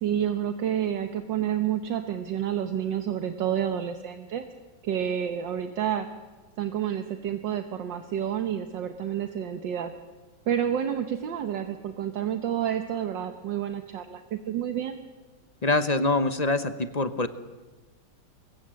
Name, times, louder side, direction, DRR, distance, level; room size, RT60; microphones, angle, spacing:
voice 1, 0.0-4.4 4.8-6.1 6.6-9.9 10.5-15.0, right 9 dB, 75° right, 7 dB, 1.8 m, -29 dB
voice 2, 15.6-17.3, left 2 dB, 35° left, 11 dB, 0.6 m, -24 dB
24.0 x 22.0 x 7.7 m, 1.3 s
omnidirectional pair, 2.1 m